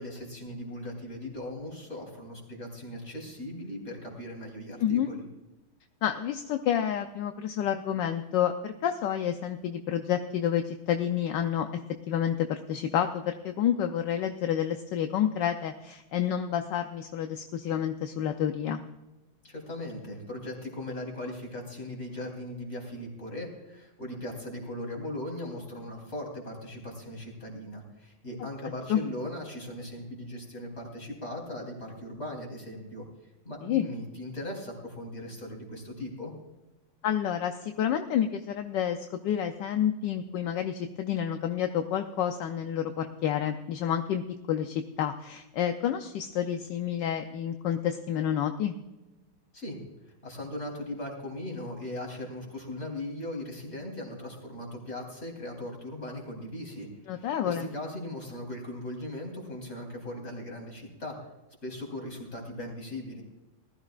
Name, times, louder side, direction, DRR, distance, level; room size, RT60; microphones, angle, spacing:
voice 1, 0.0-5.2 19.4-33.0 33.4-36.3 49.5-49.8 50.2-61.2 61.6-63.2, left 1 dB, 30° left, 0 dB, 3.7 m, -39 dB
voice 2, 4.8-5.1 6.0-11.8 12.1-18.8 28.9-29.1 33.6-33.9 37.0-39.0 39.2-48.7 57.1-57.7, left 9 dB, 70° left, 6 dB, 1.2 m, -29 dB
19.5 x 13.5 x 2.4 m, 1.0 s
omnidirectional pair, 2.3 m